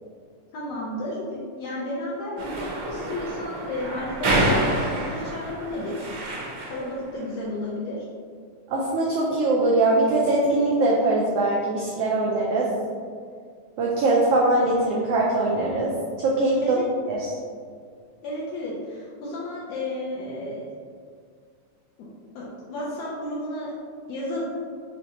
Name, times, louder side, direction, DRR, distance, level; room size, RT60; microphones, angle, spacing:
voice 1, 0.5-6.0 6.6-8.1 16.6-16.9 18.2-20.7 22.0-22.1 22.4-23.7 24.1-24.4, left 1 dB, 75° left, -7 dB, 1.7 m, -32 dB
sound 1, 2.4-6.9, right 1 dB, 70° right, 1.4 m, -27 dB
voice 2, 8.7-12.7 13.8-15.9 16.2-16.8 17.1-17.3, right 2 dB, 90° right, -4 dB, 1.3 m, -22 dB
5.5 x 3.0 x 2.8 m, 2.1 s
omnidirectional pair, 3.3 m